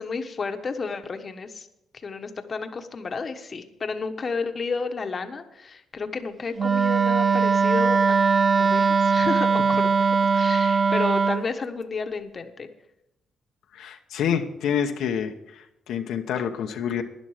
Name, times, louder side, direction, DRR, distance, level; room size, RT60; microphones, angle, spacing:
voice 1, 0.0-1.7 2.0-8.2 8.6-12.7, left 4 dB, 40° left, 7 dB, 1.2 m, -32 dB
Wind instrument woodwind instrument, 6.6-11.5, right 5 dB, 40° right, 0.6 m, -20 dB
voice 2, 13.7-17.0, left 8 dB, 80° left, 4 dB, 1.1 m, -27 dB
12.0 x 10.5 x 5.0 m, 0.87 s
cardioid pair, 90°, 0 cm